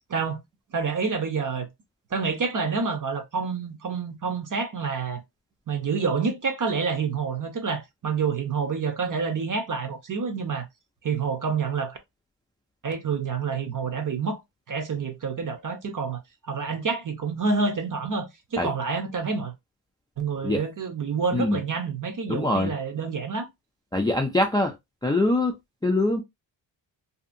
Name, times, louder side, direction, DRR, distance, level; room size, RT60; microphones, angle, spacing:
voice 1, 0.7-1.7 2.1-5.2 5.7-10.7 11.0-12.0 12.8-14.4 14.7-19.5 20.2-23.5, right 5 dB, 45° right, 0.8 m, -28 dB
voice 2, 22.3-22.7 23.9-24.7 25.0-25.6 25.8-26.2, left 2 dB, 10° left, 0.4 m, -23 dB
2.8 x 2.6 x 2.6 m
wide cardioid pair, 130°, 46 cm